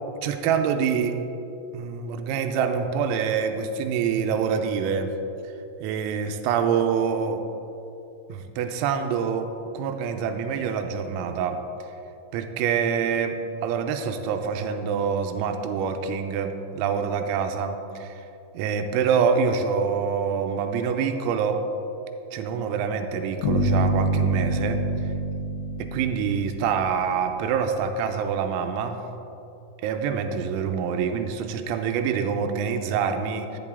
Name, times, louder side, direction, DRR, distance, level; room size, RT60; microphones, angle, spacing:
voice 1, 0.2-1.2 1.7-5.1 5.4-7.4 8.3-12.0 12.3-18.3 18.5-21.6 22.3-25.1 25.8-29.0 29.8-33.6, right 6 dB, 90° right, 6 dB, 3.4 m, -26 dB
sound 1, 23.4-27.4, right 1 dB, 85° left, 5.3 m, -26 dB
12.0 x 10.5 x 3.5 m, 2.9 s
omnidirectional pair, 6.0 m